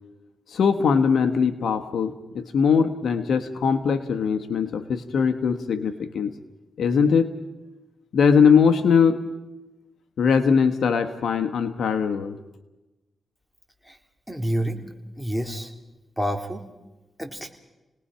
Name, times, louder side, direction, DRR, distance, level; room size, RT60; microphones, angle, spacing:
voice 1, 0.5-6.3 6.8-7.4 8.1-9.3 10.2-12.3, left 6 dB, 80° left, 8 dB, 1.3 m, -21 dB
voice 2, 14.3-14.8 15.2-15.7 16.2-16.6 17.2-17.5, equal, 5° left, 5 dB, 3.3 m, -28 dB
29.0 x 19.5 x 5.7 m, 1.0 s
cardioid pair, 70°, 0 cm